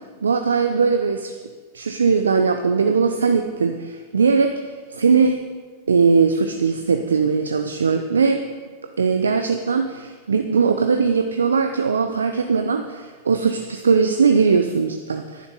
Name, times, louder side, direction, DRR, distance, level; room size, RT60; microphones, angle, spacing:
voice 1, 0.2-1.3 1.7-5.4 5.9-8.4 9.0-15.5, right 5 dB, 80° right, 6 dB, 0.6 m, -20 dB
10.5 x 10.5 x 5.4 m, 1.4 s
hypercardioid pair, 95°, 0 cm